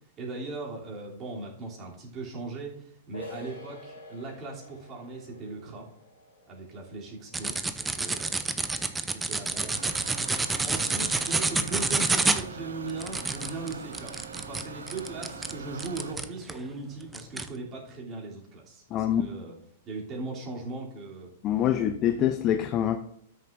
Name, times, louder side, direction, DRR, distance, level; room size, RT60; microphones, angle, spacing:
voice 1, 0.2-5.9 6.5-8.3 8.7-9.8 10.6-14.1 14.5-19.5 19.8-21.3, right 3 dB, 30° right, -3 dB, 3.0 m, -39 dB
sound 1, 3.1-8.6, left 1 dB, 90° left, 3.3 m, -48 dB
sound 2, 7.3-16.6 17.1-17.5, right 3 dB, 10° right, 0.6 m, -28 dB
sound 3, 9.7-16.1, right 4 dB, 85° right, 0.7 m, -42 dB
voice 2, 18.9-19.3 21.4-23.0, left 10 dB, 35° left, 9 dB, 0.5 m, -25 dB
13.0 x 6.6 x 2.6 m, 0.70 s
hypercardioid pair, 105°, 0 cm